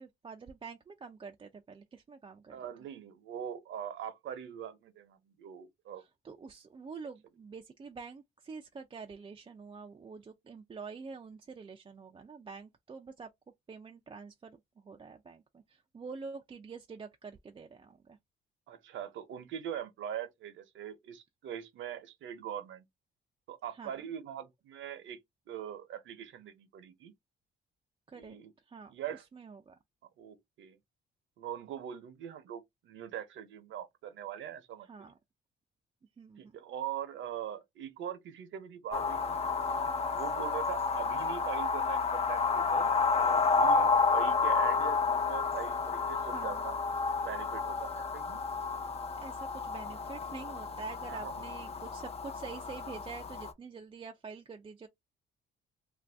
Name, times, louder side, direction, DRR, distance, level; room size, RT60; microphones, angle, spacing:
voice 1, 0.0-2.7 6.2-13.3 13.7-18.2 23.7-24.0 28.1-28.4 28.7-29.8 34.8-35.1 36.2-36.6 46.1-46.7 49.2-54.9, right 5 dB, 25° right, 0.4 m, -47 dB
voice 2, 2.5-6.0 18.7-22.9 23.5-25.2 25.5-27.1 28.1-28.5 28.9-29.2 30.2-30.8 31.4-34.9 36.4-39.5 40.1-46.7 47.2-48.4 51.1-51.3, right 9 dB, 75° right, 0.8 m, -42 dB
sound 1, 38.9-53.5, left 4 dB, 30° left, 0.5 m, -30 dB
2.6 x 2.2 x 3.3 m
cardioid pair, 90°, 20 cm